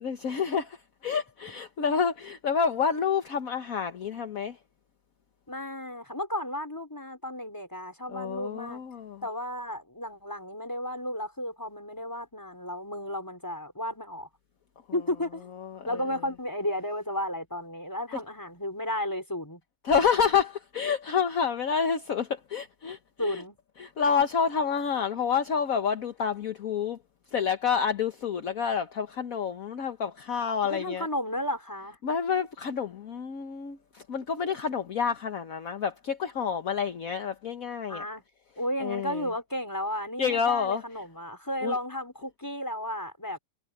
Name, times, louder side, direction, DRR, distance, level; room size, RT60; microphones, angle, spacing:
voice 1, 0.0-0.8 1.0-4.6 8.1-9.2 15.6-15.9 19.8-23.4 23.8-27.0 27.3-31.1 32.0-38.0 38.8-39.3 40.2-40.8 41.6-41.7, left 6 dB, 55° left, 1.5 m, -28 dB
voice 2, 5.5-8.8 9.2-14.3 14.9-15.5 15.8-19.6 23.2-23.6 30.6-32.0 37.9-38.2 38.6-43.4, left 1 dB, 10° left, 4.6 m, -33 dB
omnidirectional pair, 1.8 m